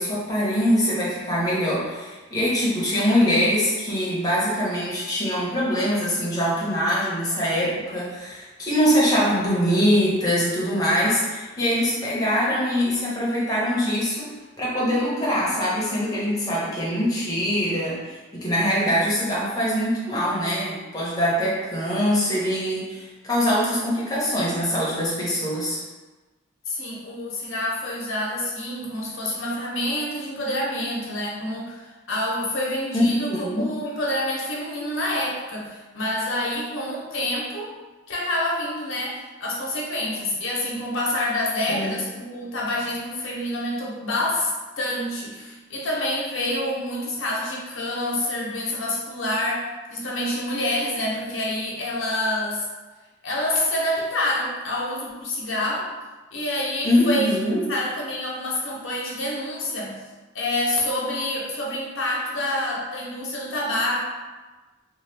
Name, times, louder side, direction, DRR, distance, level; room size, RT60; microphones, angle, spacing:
voice 1, 0.0-14.3 14.6-25.8 32.9-33.7 41.7-42.0 56.8-57.6, equal, 20° left, -7 dB, 0.9 m, -23 dB
voice 2, 26.7-37.7 38.1-52.7 53.2-55.9 56.3-57.3 57.7-60.0 60.3-64.0, left 1 dB, 70° left, -3 dB, 0.8 m, -27 dB
2.9 x 2.3 x 3.3 m, 1.2 s
head